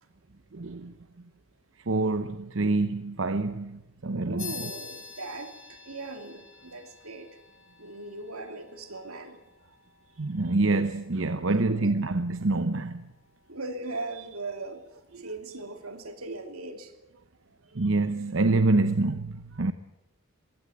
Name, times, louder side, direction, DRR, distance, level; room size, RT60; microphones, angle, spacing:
voice 1, 0.5-0.9 1.8-4.5 10.2-13.1 17.7-19.7, right 2 dB, 65° right, 0.8 m, -26 dB
voice 2, 4.1-7.4 7.8-9.4 11.7-11.9 13.5-16.9 17.8-17.9, right 2 dB, 90° right, 2.9 m, -39 dB
sound 1, 4.4-14.3, left 6 dB, 70° left, 4.3 m, -48 dB
21.5 x 17.0 x 9.1 m
head